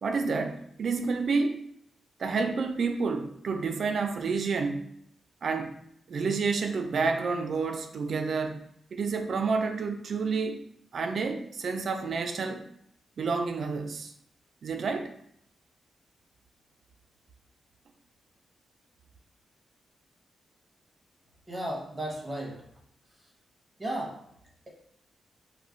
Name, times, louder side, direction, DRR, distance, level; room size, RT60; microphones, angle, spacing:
voice 1, 0.0-1.6 2.2-4.9 5.4-5.7 6.1-8.6 8.9-10.6 10.9-12.7 13.2-14.1 14.6-15.1, right 4 dB, 65° right, 6 dB, 0.3 m, -29 dB
voice 2, 21.5-22.6 23.8-24.1, right 1 dB, 20° right, -2 dB, 0.9 m, -34 dB
2.3 x 2.1 x 3.6 m, 0.71 s
cardioid pair, 85°, 0 cm